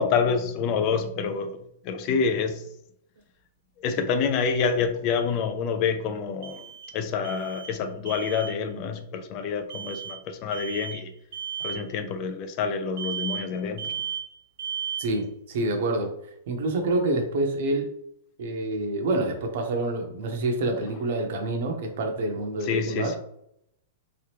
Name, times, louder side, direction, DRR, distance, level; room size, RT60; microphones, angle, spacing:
voice 1, 0.0-1.6 1.8-2.5 3.8-6.6 6.9-11.1 11.6-13.9 22.7-23.2, left 5 dB, 25° left, 8 dB, 0.3 m, -27 dB
sound 1, 3.2-3.3 6.4-7.0 7.2-8.6 9.7-10.2 10.5-11.0 11.3-11.8 13.0-13.5 13.8-14.3 14.6-15.2, right 8 dB, 70° right, 1.0 m, -34 dB
voice 2, 15.0-16.1 16.5-17.9 18.4-23.2, right 2 dB, 50° right, 3 dB, 0.8 m, -27 dB
3.3 x 3.0 x 3.3 m, 0.74 s
supercardioid pair, 175°, 0 cm